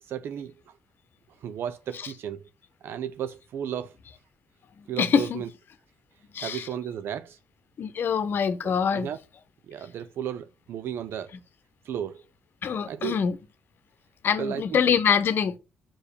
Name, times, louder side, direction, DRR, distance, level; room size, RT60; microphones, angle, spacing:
voice 1, 0.0-0.8 1.4-2.5 2.8-3.9 4.9-5.5 6.4-7.4 8.6-9.2 9.7-11.3 11.8-12.2 12.9-13.2 14.4-14.8, right 9 dB, 65° right, 0.5 m, -34 dB
voice 2, 4.8-5.4 6.3-6.7 7.8-9.1 12.6-13.4 14.2-15.6, left 7 dB, 60° left, 0.9 m, -24 dB
5.6 x 4.8 x 6.4 m
hypercardioid pair, 50°, 4 cm